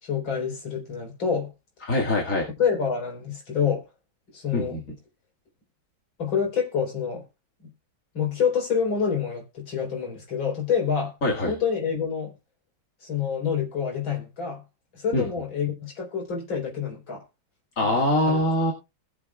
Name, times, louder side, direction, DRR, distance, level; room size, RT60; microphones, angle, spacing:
voice 1, 0.0-1.5 2.6-3.8 4.3-4.8 6.2-7.2 8.1-11.1 11.5-12.3 13.0-14.6 14.9-17.2 18.2-18.5, left 7 dB, 85° left, 4.7 m, -27 dB
voice 2, 1.9-2.5 4.5-4.8 11.2-11.5 15.1-15.3 17.8-18.7, left 1 dB, 40° left, 2.3 m, -23 dB
21.0 x 7.4 x 2.3 m
omnidirectional pair, 2.1 m